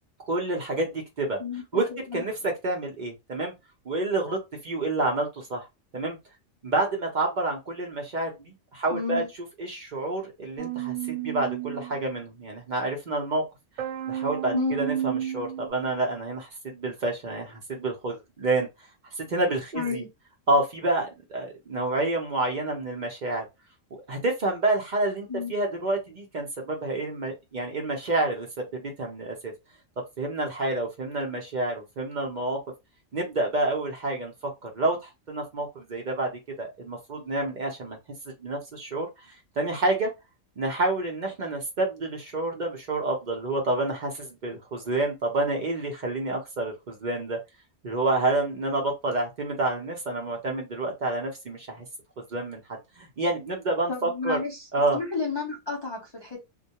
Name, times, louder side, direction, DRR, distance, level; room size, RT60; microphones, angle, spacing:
voice 1, 0.3-1.4 1.7-1.8 2.1-3.5 3.9-5.7 5.9-6.2 6.6-9.2 9.6-13.4 14.1-18.7 19.2-20.0 20.5-23.4 24.1-29.5 30.2-32.6 33.1-36.3 36.6-38.0 38.4-39.1 39.6-40.1 40.6-47.4 47.8-51.8 52.3-52.6 53.0-54.4 54.7-55.0, right 2 dB, 50° right, 0.6 m, -28 dB
voice 2, 8.9-9.3 14.5-14.8 19.7-20.1 25.3-25.5 53.9-54.7 54.9-56.4, left 4 dB, 40° left, 0.4 m, -30 dB
sound 1, 10.6-12.1 13.8-15.7, right 11 dB, 75° right, 1.0 m, -32 dB
2.2 x 2.2 x 2.8 m
omnidirectional pair, 1.3 m